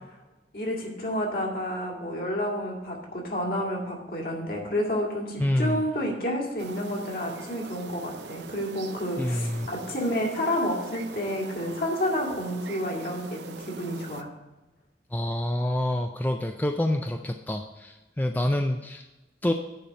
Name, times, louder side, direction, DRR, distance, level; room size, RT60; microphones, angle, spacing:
voice 1, 0.5-14.3, equal, 55° left, -1 dB, 2.2 m, -30 dB
voice 2, 5.4-5.8 9.2-9.7 15.1-19.0 19.4-19.5, left 1 dB, 10° left, 4 dB, 0.4 m, -27 dB
sound 1, 6.6-14.2, right 4 dB, 70° right, 0.6 m, -42 dB
10.0 x 4.2 x 7.5 m, 1.1 s
head